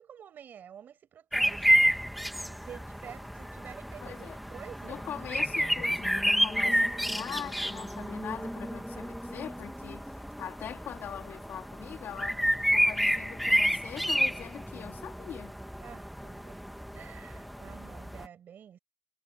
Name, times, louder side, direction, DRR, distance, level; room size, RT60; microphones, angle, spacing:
voice 1, 0.0-1.8 2.4-5.0 15.8-16.6 16.9-18.8, right 9 dB, 50° right, 6.4 m, -49 dB
sound 1, 1.3-18.3, equal, ahead, 1.5 m, -30 dB
voice 2, 4.0-4.4 4.8-12.4 12.7-15.5, left 9 dB, 55° left, 2.8 m, -42 dB
cardioid pair, 140°, 4 cm